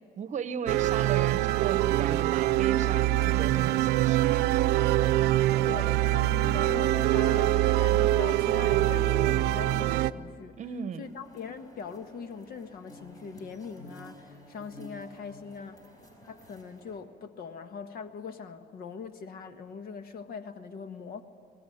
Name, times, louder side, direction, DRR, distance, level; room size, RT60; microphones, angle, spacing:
voice 1, 0.2-4.2 10.6-11.1, right 7 dB, 45° right, 13 dB, 1.0 m, -36 dB
sound 1, 0.7-10.1, right 15 dB, 90° right, 0.6 m, -24 dB
voice 2, 5.6-10.6 11.0-15.9 16.2-21.2, left 6 dB, 60° left, 9 dB, 1.5 m, -41 dB
sound 2, 11.0-17.0, equal, 20° left, 4.9 m, -51 dB
23.5 x 18.5 x 10.0 m, 2.2 s
cardioid pair, 110°, 17 cm